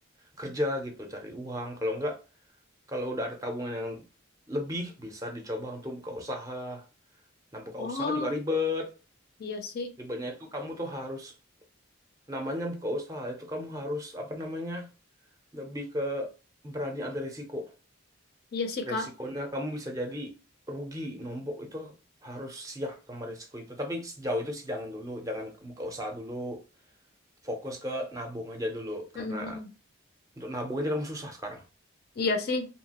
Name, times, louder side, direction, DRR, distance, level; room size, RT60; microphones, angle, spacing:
voice 1, 0.4-2.2 2.9-4.0 4.5-6.8 7.5-8.9 10.0-11.3 12.3-14.9 15.5-16.3 16.6-17.7 18.8-20.3 20.7-21.9 22.2-26.6 27.4-29.6 30.4-31.6, left 1 dB, 15° right, 0.5 m, -34 dB
voice 2, 7.8-8.3 9.4-9.9 18.5-19.1 29.2-29.7 32.2-32.7, left 3 dB, 45° left, 0.4 m, -31 dB
2.8 x 2.3 x 2.8 m
head